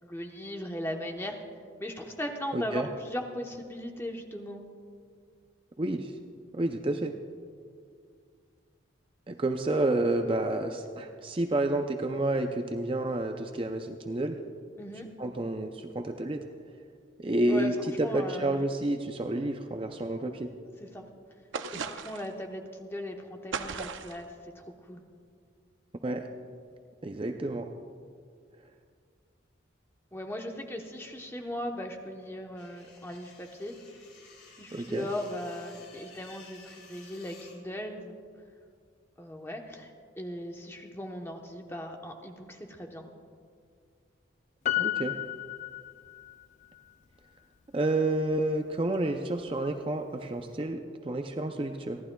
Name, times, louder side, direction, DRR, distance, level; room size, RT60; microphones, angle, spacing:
voice 1, 0.0-1.3 1.8-4.6 14.8-15.1 17.5-17.7 18.0-18.7 20.8-21.0 21.7-25.0 30.1-33.7 34.6-38.2 39.2-43.1, left 1 dB, 10° left, 2 dB, 0.9 m, -38 dB
voice 2, 2.5-2.9 5.8-6.1 6.5-7.1 9.3-14.4 15.2-16.4 17.2-20.5 26.0-26.3 27.0-27.7 34.7-35.1 44.7-45.2 47.7-52.0, right 2 dB, 25° right, 5 dB, 0.5 m, -30 dB
sound 1, 21.5-22.3 23.5-24.2, right 5 dB, 75° right, 0.6 m, -36 dB
sound 2, 32.6-37.6, left 4 dB, 75° left, 3.3 m, -54 dB
Piano, 44.7-46.4 46.8-46.9, left 15 dB, 35° left, 0.3 m, -32 dB
30.0 x 11.5 x 2.3 m, 2.2 s
head